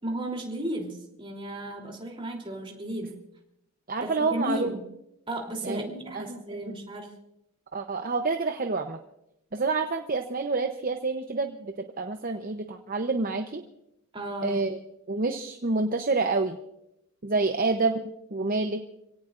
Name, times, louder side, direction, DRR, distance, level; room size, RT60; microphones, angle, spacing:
voice 1, 0.0-3.2 4.0-4.8 5.3-7.1 14.1-14.7, right 1 dB, 25° right, 0 dB, 3.3 m, -34 dB
voice 2, 3.9-4.7 5.6-6.7 7.7-9.0 9.5-13.6 14.4-14.8 15.1-16.6 17.2-18.0 18.3-18.8, right 3 dB, 40° right, 5 dB, 0.8 m, -28 dB
28.0 x 17.5 x 2.6 m, 0.83 s
head